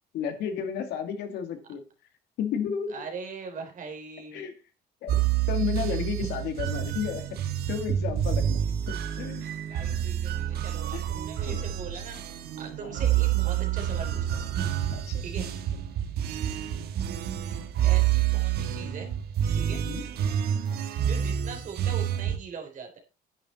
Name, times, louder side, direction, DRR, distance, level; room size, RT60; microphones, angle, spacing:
voice 1, 0.1-1.8 2.4-3.0 4.3-4.5 5.0-5.2 5.5-7.4 7.7-8.6 8.9-9.5 10.9-11.0 11.5-11.6 12.8-13.0 14.9-15.2 19.7-20.0 20.7-20.9, left 7 dB, 80° left, 7 dB, 2.3 m, -32 dB
voice 2, 2.9-4.5 6.2-6.3 8.6-8.7 9.7-14.5 15.2-15.5 17.8-19.1 19.5-19.8 21.0-23.0, right 5 dB, 50° right, 4 dB, 3.6 m, -41 dB
sound 1, 5.1-22.4, right 10 dB, 70° right, 1.5 m, -28 dB
10.0 x 9.1 x 4.3 m, 0.33 s
cardioid pair, 110°, 17 cm